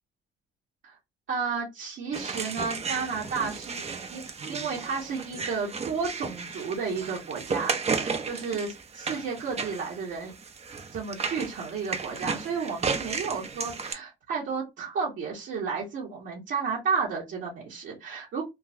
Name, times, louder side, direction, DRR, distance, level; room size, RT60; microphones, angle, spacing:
voice 1, 1.3-3.8 4.1-4.2 4.5-10.3 10.9-18.4, right 5 dB, 70° right, -6 dB, 1.4 m, -32 dB
sound 1, 2.1-13.9, right 5 dB, 35° right, 0.6 m, -34 dB
3.7 x 2.3 x 2.7 m, 0.21 s
cardioid pair, 90°, 20 cm